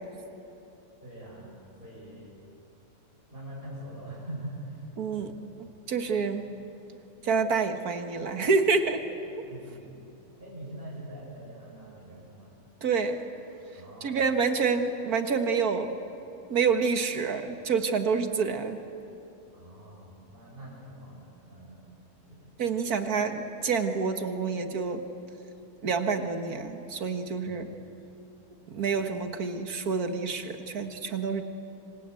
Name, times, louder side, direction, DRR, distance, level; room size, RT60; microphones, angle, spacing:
voice 1, 1.0-2.3 3.3-5.4 6.0-6.3 6.5-6.6 9.3-10.0 10.4-12.5 13.7-14.4 19.5-21.9 22.3-22.5 27.4-27.7 28.7-28.9, right 1 dB, 35° right, -6 dB, 7.2 m, -44 dB
voice 2, 5.0-5.3 5.9-6.4 7.2-9.0 12.8-13.2 14.0-15.9 16.5-18.8 22.6-25.0 25.8-27.7 28.7-31.4, right 5 dB, 70° right, 7 dB, 2.1 m, -27 dB
26.5 x 26.0 x 8.4 m, 2.9 s
omnidirectional pair, 1.6 m